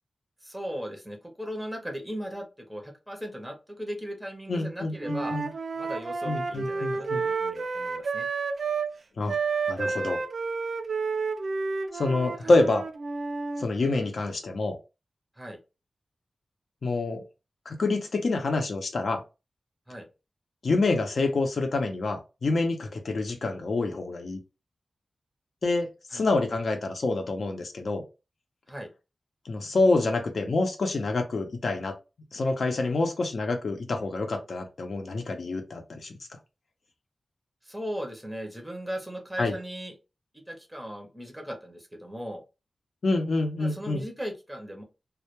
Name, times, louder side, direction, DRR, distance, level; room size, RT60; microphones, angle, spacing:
voice 1, 0.4-5.4 5.7-8.3 12.4-12.6 15.3-15.6 19.9-20.0 26.1-26.3 28.7-28.9 37.6-39.9 40.3-42.4 43.6-44.8, equal, 5° right, 3 dB, 0.6 m, -38 dB
voice 2, 4.5-5.5 6.2-7.2 9.2-9.4 9.7-10.2 11.9-12.8 13.6-14.8 16.8-17.2 17.7-19.2 20.6-24.4 25.6-28.0 29.5-32.0 32.3-36.2 39.4-39.5 43.0-44.0, left 3 dB, 65° left, 5 dB, 0.6 m, -27 dB
Wind instrument woodwind instrument, 5.0-8.9 9.3-13.6, right 4 dB, 65° right, 0.3 m, -30 dB
2.2 x 2.1 x 2.9 m, 0.28 s
wide cardioid pair, 110°, 0 cm